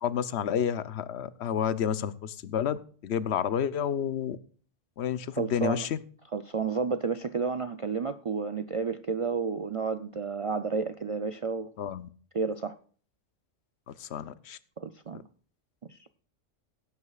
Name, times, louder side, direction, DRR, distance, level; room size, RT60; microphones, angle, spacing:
voice 1, 0.0-4.4 5.0-6.0 11.8-12.1 13.9-14.6, left 8 dB, 65° left, 0.9 m, -30 dB
voice 2, 5.4-5.9 6.3-11.7 12.3-12.8 14.8-15.2 15.9-16.0, right 5 dB, 60° right, 0.3 m, -31 dB
17.5 x 9.6 x 2.4 m
omnidirectional pair, 1.2 m